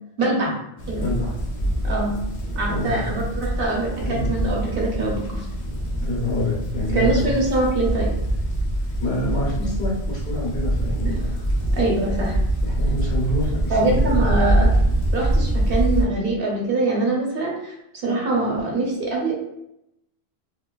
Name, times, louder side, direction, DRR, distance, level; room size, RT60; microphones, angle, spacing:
voice 1, 0.2-0.5 0.9-1.1 1.8-2.2 2.5-5.4 6.9-8.1 11.7-12.4 13.7-14.7 15.1-19.3, right 2 dB, 65° right, -2 dB, 0.8 m, -23 dB
sound 1, 0.8-16.1, right 1 dB, 55° left, 0.6 m, -24 dB
voice 2, 1.0-1.3 2.7-3.2 4.0-4.4 6.0-7.3 9.0-11.4 12.6-14.3, left 1 dB, 80° left, -4 dB, 1.2 m, -27 dB
2.6 x 2.2 x 2.2 m, 0.83 s
omnidirectional pair, 1.1 m